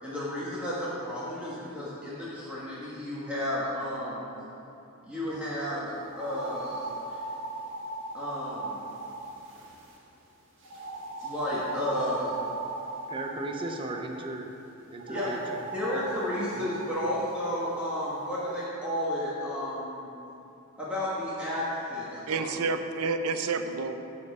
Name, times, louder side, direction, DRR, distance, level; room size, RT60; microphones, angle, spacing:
voice 1, 0.0-4.3 5.0-7.3 8.1-8.9 11.2-12.4 15.1-20.1 20.8-22.5, left 1 dB, 5° right, -10 dB, 1.4 m, -32 dB
sound 1, 6.1-10.0 10.6-13.9 15.0-18.2, right 3 dB, 60° right, 1.6 m, -38 dB
voice 2, 13.1-14.5 14.9-15.6, right 2 dB, 25° right, 2 dB, 0.5 m, -36 dB
voice 3, 22.3-24.0, right 4 dB, 85° right, 8 dB, 0.6 m, -29 dB
9.8 x 4.3 x 7.0 m, 2.9 s
head